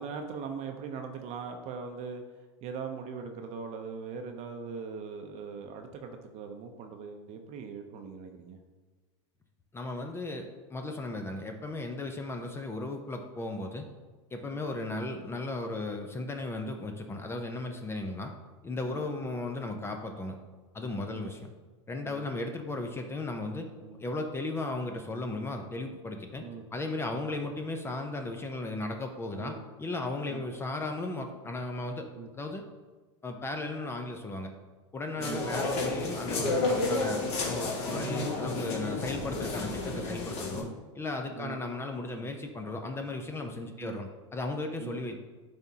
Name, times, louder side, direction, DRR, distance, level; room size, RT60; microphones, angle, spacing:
voice 1, 0.0-2.2 2.6-8.6 14.5-14.6 18.8-19.0 21.0-21.3 22.0-22.3 23.8-24.0 26.4-26.6 27.1-27.3 29.4-29.6 30.3-30.5 32.1-32.3 35.1-35.4 38.0-38.2 40.5-40.8 41.3-41.6 43.8-44.0 44.8-45.0, right 5 dB, 45° right, 5 dB, 0.7 m, -41 dB
voice 2, 9.7-13.9 14.3-18.3 18.6-20.4 20.7-21.5 21.9-23.7 24.0-26.4 26.7-32.1 32.3-32.6 33.2-34.5 34.9-40.7 41.0-45.2, left 2 dB, 15° left, 4 dB, 0.5 m, -36 dB
sound 1, 35.2-40.6, left 2 dB, 40° left, 1.5 m, -31 dB
10.5 x 3.5 x 2.8 m, 1.3 s
hypercardioid pair, 115°, 16 cm